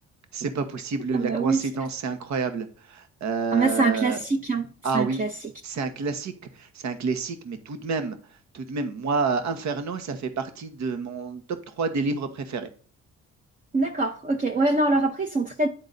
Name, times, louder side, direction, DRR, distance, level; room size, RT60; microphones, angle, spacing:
voice 1, 0.3-4.2 4.8-5.2 5.6-8.2 8.5-12.7, right 4 dB, 65° right, 1.2 m, -29 dB
voice 2, 1.1-1.6 3.5-4.7 4.9-5.3 13.7-15.7, right 3 dB, 30° right, 0.8 m, -24 dB
10.5 x 4.0 x 3.9 m
cardioid pair, 90°, 30 cm